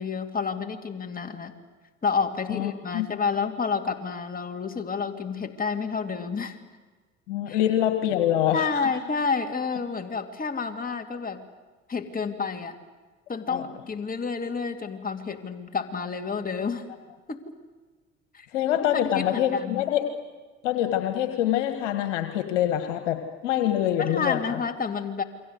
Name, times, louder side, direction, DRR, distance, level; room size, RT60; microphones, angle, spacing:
voice 1, 0.0-1.5 2.0-6.6 7.5-7.6 8.5-11.4 11.9-12.8 13.3-16.8 17.3-17.6 18.3-18.5 18.9-19.8 24.0-25.2, left 5 dB, 25° left, 5 dB, 2.6 m, -29 dB
voice 2, 2.5-3.1 7.3-8.7 13.5-13.6 18.5-20.0 20.6-24.6, left 11 dB, 75° left, 7 dB, 1.8 m, -25 dB
28.5 x 24.0 x 8.1 m, 1.3 s
hypercardioid pair, 60°, 36 cm